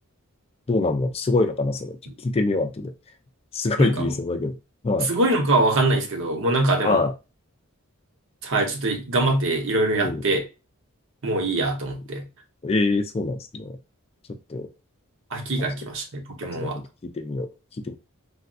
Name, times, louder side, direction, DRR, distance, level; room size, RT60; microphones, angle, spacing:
voice 1, 0.7-2.0 2.2-2.9 3.5-4.6 4.8-5.1 6.8-7.1 9.9-10.2 12.6-13.8 14.5-14.7 16.5-17.5 17.9-18.0, left 2 dB, 30° left, 0.4 m, -24 dB
voice 2, 3.8-4.1 5.0-7.0 8.4-10.5 11.2-12.2 15.3-16.8, right 2 dB, 65° right, 0.8 m, -23 dB
3.3 x 2.6 x 2.3 m
head